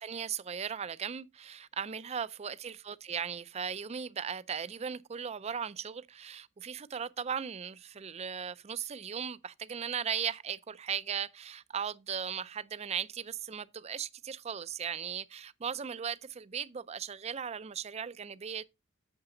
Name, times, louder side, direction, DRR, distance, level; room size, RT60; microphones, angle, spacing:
voice 1, 0.0-18.6, right 7 dB, 30° right, 0.4 m, -37 dB
8.8 x 6.7 x 3.8 m
head